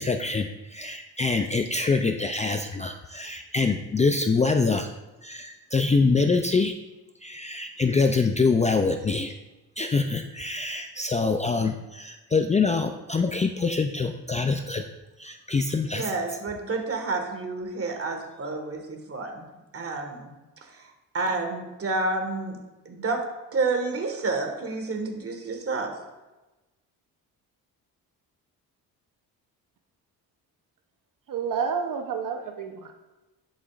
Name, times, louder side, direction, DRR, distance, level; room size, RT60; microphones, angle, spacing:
voice 1, 0.0-4.9 5.2-6.7 7.2-9.3 9.8-14.9 15.2-16.2, left 4 dB, 20° left, 5 dB, 0.4 m, -25 dB
voice 2, 15.9-19.5 19.7-20.3 21.1-22.6 22.9-23.2 23.5-25.9, right 3 dB, 40° right, 3 dB, 1.6 m, -29 dB
voice 3, 31.3-32.9, right 6 dB, 55° right, 5 dB, 0.8 m, -29 dB
10.5 x 6.4 x 2.5 m, 1.1 s
cardioid pair, 90°, 38 cm